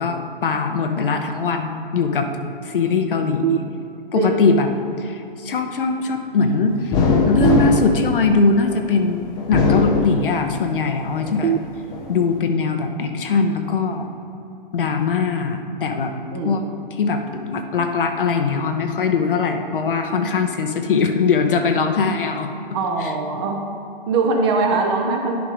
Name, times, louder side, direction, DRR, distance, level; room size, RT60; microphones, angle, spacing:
voice 1, 0.0-2.3 2.6-3.6 4.1-4.7 5.0-7.0 7.3-11.6 12.1-14.1 14.7-16.1 16.4-16.6 16.9-22.5 23.0-23.1, left 4 dB, 65° left, 5 dB, 0.8 m, -21 dB
sound 1, 3.4-4.4 7.4-8.4 11.4-12.4, right 10 dB, 65° right, 0.4 m, -26 dB
sound 2, 6.9-8.8 9.4-10.7 11.2-12.0, left 4 dB, 15° left, 0.5 m, -20 dB
voice 2, 22.7-23.6 24.1-25.4, right 3 dB, 30° right, 2 dB, 0.7 m, -21 dB
10.5 x 3.7 x 4.9 m, 2.7 s
hypercardioid pair, 135°, 29 cm